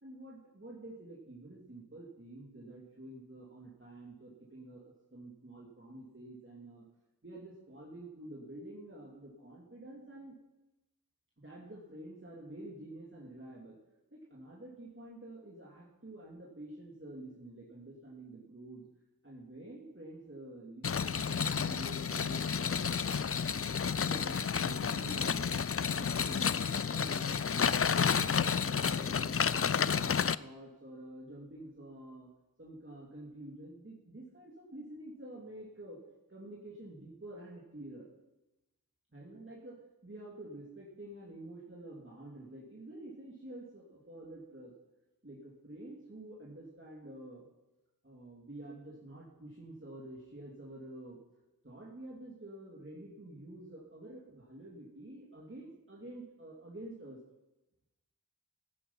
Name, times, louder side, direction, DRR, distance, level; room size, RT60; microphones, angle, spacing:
voice 1, 0.0-6.8 7.2-10.4 11.4-13.8 14.1-18.9 19.2-23.7 24.0-28.2 28.6-32.3 32.6-36.0 36.3-38.1 39.1-44.7 45.2-47.5 48.0-51.2 51.6-57.2, right 1 dB, 35° right, -5 dB, 2.8 m, -49 dB
sound 1, 20.8-30.4, left 6 dB, 40° left, 0.4 m, -31 dB
15.5 x 10.0 x 5.6 m, 0.98 s
wide cardioid pair, 40°, 37 cm